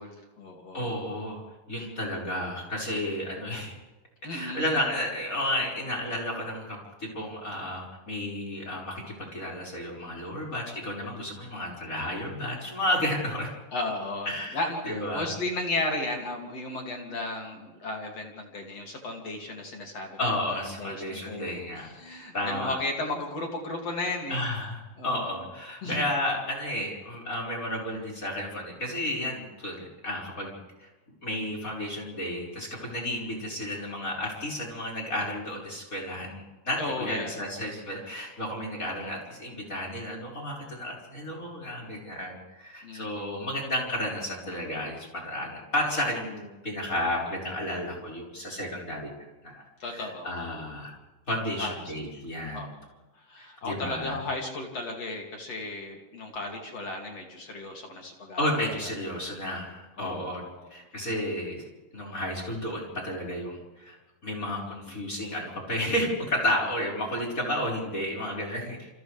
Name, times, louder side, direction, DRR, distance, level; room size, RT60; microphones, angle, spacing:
voice 1, 0.0-1.0 4.2-4.8 13.7-20.2 20.8-21.6 22.0-24.4 25.0-25.4 25.8-26.0 36.8-37.4 42.8-43.3 49.8-50.3 51.6-51.8 52.5-52.7 53.2-58.5 60.0-60.2 60.6-60.7 64.4-64.5 64.9-65.0, left 2 dB, 45° left, 1 dB, 3.5 m, -34 dB
voice 2, 0.7-1.4 1.7-3.7 4.3-13.5 14.3-14.6 14.8-15.3 20.2-21.9 22.3-22.8 24.3-30.9 31.2-49.1 49.4-50.9 51.3-52.7 53.4-54.2 58.4-60.4 60.7-61.6 61.9-64.0 64.2-68.9, left 1 dB, 20° left, -1 dB, 5.8 m, -32 dB
29.5 x 29.0 x 3.5 m, 1.1 s
omnidirectional pair, 4.3 m